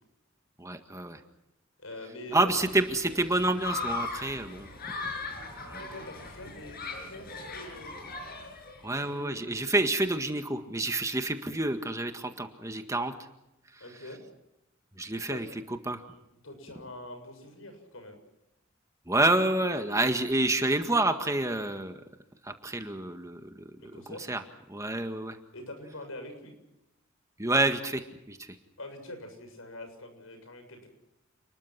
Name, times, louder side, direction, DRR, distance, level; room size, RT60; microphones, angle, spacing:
voice 1, 0.6-1.2 2.3-4.7 5.0-5.1 5.7-5.8 8.8-13.1 13.7-13.8 15.0-16.0 19.1-22.0 22.4-24.4 24.7-25.4 27.4-28.5, right 2 dB, 15° right, 6 dB, 1.8 m, -28 dB
voice 2, 1.8-2.5 5.5-8.0 8.9-9.7 13.8-14.2 15.3-15.4 16.1-18.2 23.8-24.3 25.5-26.5 28.8-30.9, left 1 dB, 75° left, 6 dB, 7.2 m, -44 dB
Human group actions, 2.5-9.1, left 3 dB, 50° left, 6.7 m, -39 dB
29.5 x 21.0 x 6.0 m, 0.89 s
head